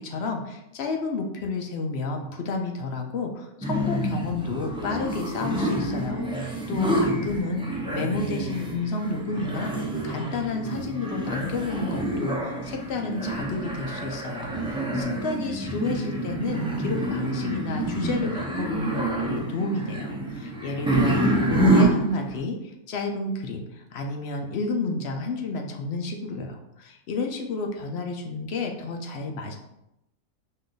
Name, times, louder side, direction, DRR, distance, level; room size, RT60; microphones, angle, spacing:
voice 1, 0.0-7.7 7.9-29.6, left 3 dB, 70° left, 3 dB, 0.6 m, -31 dB
sound 1, 3.6-22.4, right 1 dB, 10° right, 0.3 m, -27 dB
5.3 x 2.5 x 3.8 m, 0.86 s
omnidirectional pair, 1.7 m